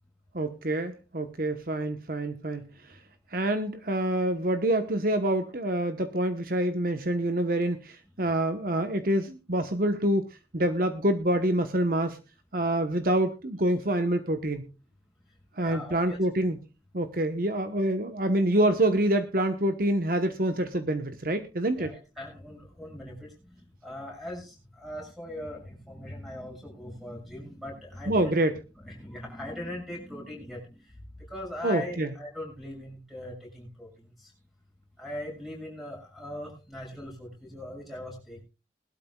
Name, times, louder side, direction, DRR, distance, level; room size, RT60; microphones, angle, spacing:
voice 1, 0.3-3.0 3.3-10.2 10.5-12.2 12.5-14.7 15.6-16.6 16.9-21.9 28.1-28.5 31.6-32.1, right 1 dB, 50° right, 8 dB, 1.1 m, -26 dB
voice 2, 15.6-16.2 21.7-23.3 23.8-28.3 28.8-30.8 31.3-33.9 34.2-34.3 35.0-38.4, left 1 dB, ahead, 0 dB, 6.9 m, -40 dB
21.0 x 12.5 x 2.3 m, 0.32 s
head